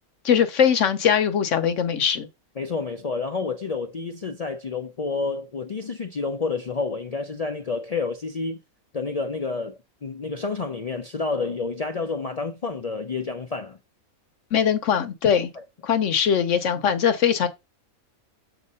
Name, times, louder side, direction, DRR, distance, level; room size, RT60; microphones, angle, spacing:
voice 1, 0.2-2.3 14.5-15.5 15.8-17.5, left 8 dB, 60° left, 1.1 m, -21 dB
voice 2, 2.6-8.6 8.9-13.8 15.5-15.6, left 4 dB, 80° left, 0.3 m, -29 dB
7.3 x 3.0 x 5.4 m
omnidirectional pair, 1.5 m